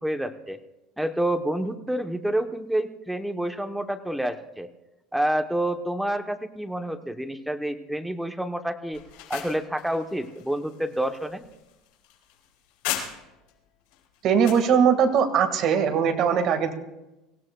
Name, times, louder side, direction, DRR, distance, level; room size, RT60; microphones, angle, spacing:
voice 1, 0.0-0.6 1.0-4.7 5.1-9.0 9.3-11.4, right 1 dB, ahead, 7 dB, 0.8 m, -28 dB
sound 1, 8.9-13.5 13.9-14.7, left 11 dB, 80° left, 3.7 m, -37 dB
voice 2, 14.2-16.7, right 7 dB, 45° right, 5 dB, 1.6 m, -20 dB
25.0 x 16.5 x 2.2 m, 0.99 s
cardioid pair, 155°, 0 cm